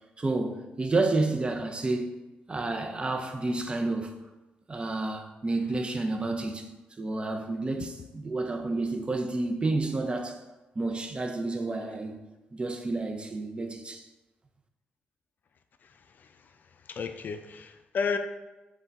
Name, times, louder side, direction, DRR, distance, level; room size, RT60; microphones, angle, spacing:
voice 1, 0.2-2.1 2.5-4.2 4.7-6.7 7.0-10.4 10.8-12.2 12.5-14.0, right 2 dB, 30° right, 0.6 m, -30 dB
voice 2, 15.8-16.4 16.9-18.2, left 5 dB, 55° left, 0.3 m, -33 dB
5.7 x 2.3 x 4.0 m
cardioid pair, 70°, 4 cm